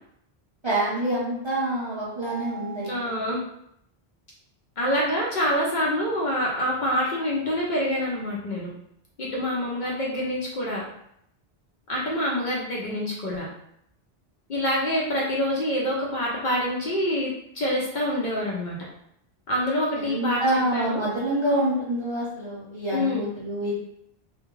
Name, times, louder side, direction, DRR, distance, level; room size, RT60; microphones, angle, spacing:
voice 1, 0.6-3.1 20.0-23.7, right 1 dB, 35° right, -7 dB, 0.5 m, -26 dB
voice 2, 2.8-3.4 4.8-8.7 9.2-10.8 11.9-13.5 14.5-18.8 19.5-21.0 22.9-23.3, equal, 55° left, -3 dB, 0.6 m, -26 dB
2.3 x 2.1 x 2.9 m, 0.75 s
omnidirectional pair, 1.1 m